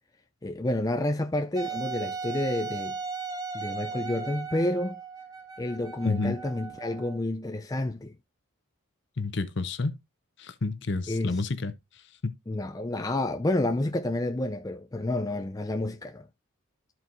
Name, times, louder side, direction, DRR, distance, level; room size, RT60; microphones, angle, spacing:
voice 1, 0.4-3.0 3.5-5.0 5.6-8.2 11.1-11.4 12.5-16.3, left 1 dB, 15° left, 0.3 m, -29 dB
Wind instrument woodwind instrument, 1.6-7.2, right 5 dB, 15° right, 0.8 m, -37 dB
voice 2, 6.0-6.3 9.2-10.0 10.4-11.7 12.2-12.3, left 3 dB, 55° left, 0.7 m, -29 dB
13.0 x 4.5 x 2.5 m
head